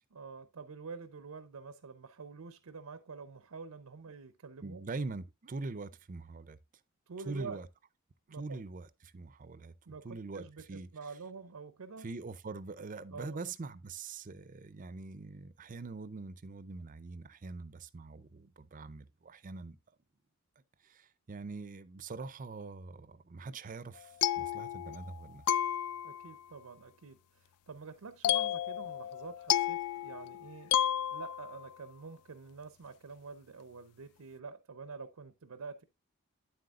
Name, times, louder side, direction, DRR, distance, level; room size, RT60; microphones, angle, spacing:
voice 1, 0.1-4.8 7.1-7.6 8.3-8.6 9.9-12.1 13.1-13.4 26.0-30.7 31.1-35.8, right 4 dB, 85° right, 0.6 m, -47 dB
voice 2, 4.6-6.6 7.3-7.7 8.3-9.7 10.0-10.9 12.0-19.8 20.8-25.6, right 3 dB, 35° right, 0.5 m, -43 dB
sound 1, 24.0-25.2 25.5-26.3 28.2-31.7, left 11 dB, 85° left, 0.3 m, -32 dB
9.1 x 7.8 x 2.4 m
head